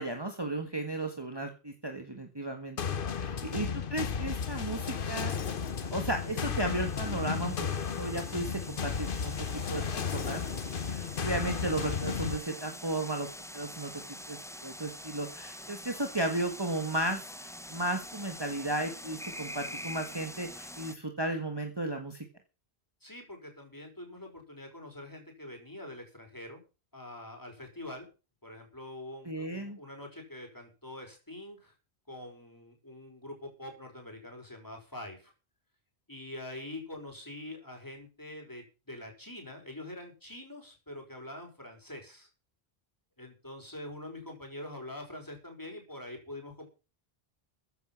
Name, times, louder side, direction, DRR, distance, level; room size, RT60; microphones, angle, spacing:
voice 1, 0.0-2.8 3.1-5.3 5.9-22.2 29.2-29.8, right 2 dB, 25° right, 4 dB, 1.7 m, -35 dB
sound 1, 2.8-12.4, left 6 dB, 60° left, 1.1 m, -34 dB
sound 2, 4.7-20.9, equal, 5° left, 0.8 m, -46 dB
voice 2, 23.0-26.6 26.9-28.1 28.4-31.7 32.1-35.3 36.1-42.3 43.2-46.7, left 1 dB, 20° left, 2 dB, 5.4 m, -45 dB
15.0 x 9.3 x 6.0 m, 0.33 s
omnidirectional pair, 1.1 m